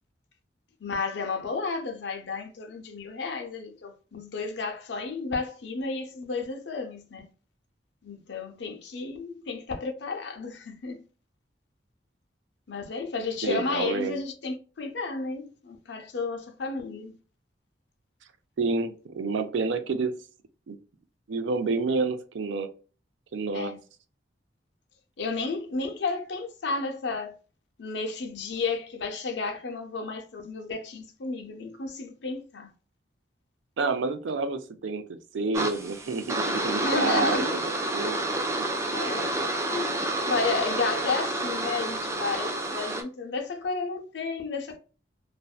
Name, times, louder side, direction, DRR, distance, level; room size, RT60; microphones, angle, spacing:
voice 1, 0.8-7.3 8.0-11.0 12.7-17.2 23.5-23.8 25.2-27.4 27.8-32.7 36.7-37.6 38.9-39.3 39.7-44.8, left 4 dB, 65° left, 0.5 m, -32 dB
voice 2, 13.4-14.2 18.6-20.1 20.7-20.8 21.3-22.7 23.3-23.7 33.8-38.2 38.6-38.7, right 4 dB, 85° right, 0.4 m, -29 dB
sound 1, 35.5-43.0, right 2 dB, 15° right, 0.3 m, -29 dB
2.6 x 2.1 x 2.3 m
head